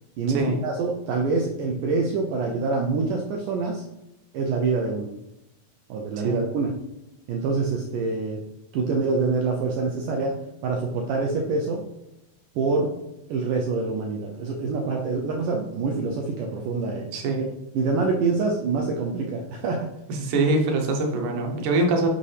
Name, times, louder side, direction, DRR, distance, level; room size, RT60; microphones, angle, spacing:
voice 1, 0.2-3.8 4.3-5.1 5.9-6.7 7.3-8.4 8.7-10.4 10.6-11.8 12.6-12.9 13.3-17.1 17.4-17.5 17.7-19.9, right 4 dB, 85° right, 1 dB, 1.8 m, -25 dB
voice 2, 20.1-22.1, right 2 dB, 70° right, 2 dB, 2.1 m, -23 dB
7.8 x 5.3 x 3.3 m, 0.90 s
omnidirectional pair, 4.5 m